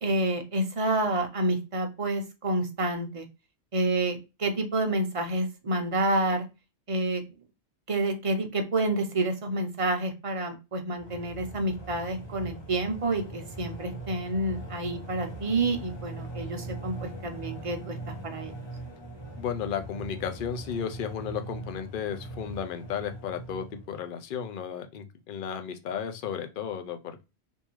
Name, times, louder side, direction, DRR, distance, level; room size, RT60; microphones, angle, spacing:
voice 1, 0.0-3.3 3.7-6.5 6.9-7.2 7.9-18.0 18.2-18.5, right 2 dB, 35° right, 4 dB, 0.7 m, -29 dB
sound 1, 11.0-24.0, right 2 dB, 25° left, 0.9 m, -41 dB
voice 2, 19.4-27.2, left 7 dB, 55° left, 8 dB, 0.7 m, -34 dB
3.5 x 2.7 x 3.0 m, 0.27 s
omnidirectional pair, 1.1 m